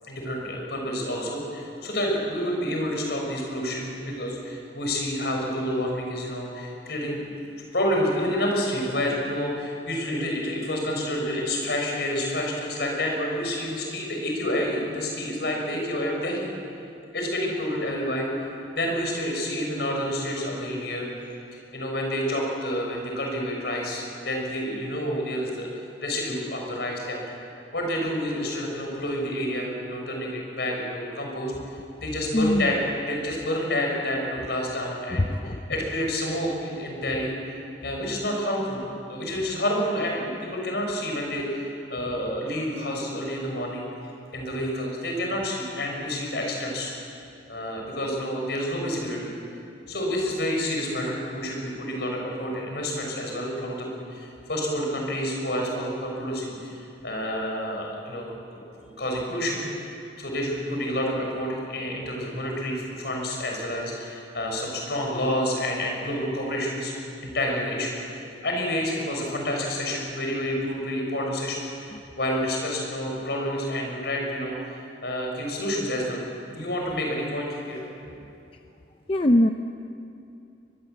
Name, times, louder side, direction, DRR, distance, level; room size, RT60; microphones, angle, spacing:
voice 1, 0.0-7.3 7.6-16.5 17.1-18.3 18.7-21.1 21.7-25.7 26.0-27.2 27.7-31.5 32.0-32.8 33.0-37.3 37.8-38.8 39.1-43.9 44.3-46.9 47.5-49.3 49.9-58.3 58.5-59.6 60.2-66.9 67.2-71.9 72.2-77.8, equal, 65° left, 0 dB, 6.5 m, -29 dB
voice 2, 32.3-32.7 35.1-35.6 71.9-72.0 79.1-79.5, left 1 dB, 30° left, 5 dB, 0.6 m, -22 dB
22.5 x 22.5 x 8.2 m, 2.6 s
head